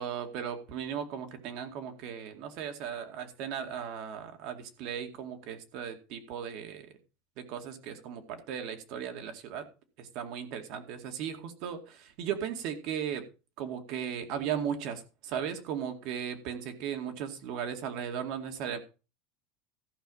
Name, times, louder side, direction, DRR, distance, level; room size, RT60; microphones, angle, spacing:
voice 1, 0.0-6.9 7.4-9.6 10.0-13.2 13.6-18.8, right 8 dB, 55° right, 2.2 m, -37 dB
14.5 x 5.7 x 5.6 m
supercardioid pair, 150°, 0 cm